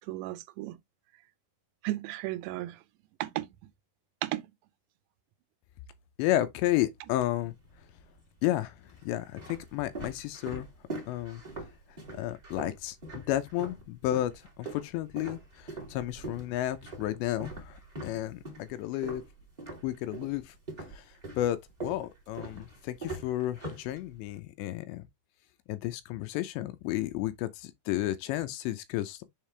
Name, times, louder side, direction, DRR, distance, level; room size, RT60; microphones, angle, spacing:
voice 1, 0.1-0.8 1.8-2.8 3.2-3.5 4.2-4.5, right 17 dB, 85° right, 2.9 m, -34 dB
voice 2, 6.2-7.5 8.4-10.7 11.1-11.4 12.1-19.2 19.8-20.6 20.9-25.0 25.7-29.2, left 14 dB, 80° left, 2.9 m, -32 dB
sound 1, 7.3-8.0 8.7-13.8 14.1-20.4 20.7-24.4, right 2 dB, 15° right, 1.8 m, -42 dB
7.4 x 4.0 x 3.3 m
omnidirectional pair, 5.1 m